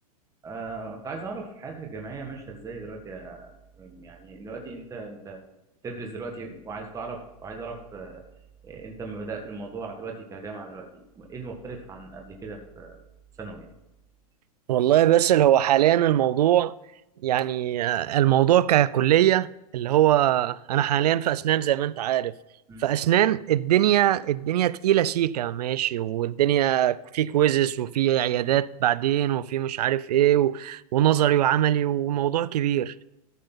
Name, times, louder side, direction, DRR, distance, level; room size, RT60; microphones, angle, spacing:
voice 1, 0.4-3.5 3.8-5.4 5.8-8.2 8.6-13.0 13.4-13.7 22.7-22.8, right 3 dB, 15° right, 1.7 m, -38 dB
voice 2, 14.7-16.7 17.2-19.5 19.7-22.3 22.8-32.9, right 12 dB, 85° right, 0.5 m, -22 dB
13.5 x 6.5 x 3.9 m
hypercardioid pair, 130°, 20 cm